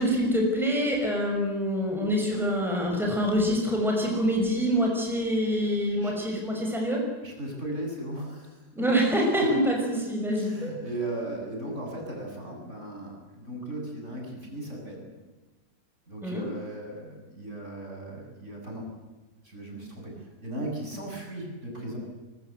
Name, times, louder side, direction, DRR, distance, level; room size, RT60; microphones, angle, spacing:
voice 1, 0.0-7.0 8.7-10.7 16.2-16.5, equal, ahead, -1 dB, 5.9 m, -25 dB
voice 2, 7.2-8.6 9.4-9.7 10.3-15.0 16.1-18.9 19.4-22.0, right 1 dB, 45° right, -1 dB, 8.2 m, -37 dB
24.5 x 22.5 x 8.2 m, 1.2 s
omnidirectional pair, 1.7 m